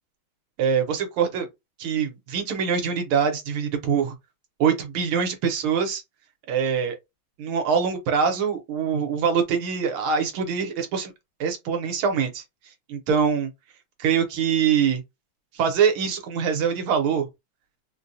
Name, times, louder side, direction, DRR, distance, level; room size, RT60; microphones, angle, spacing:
voice 1, 0.6-1.5 1.8-4.1 4.6-6.0 6.5-7.0 7.4-11.1 11.4-12.4 12.9-13.5 14.0-15.0 15.5-17.3, right 7 dB, 75° right, 1.7 m, -24 dB
4.3 x 2.2 x 2.6 m
omnidirectional pair, 2.4 m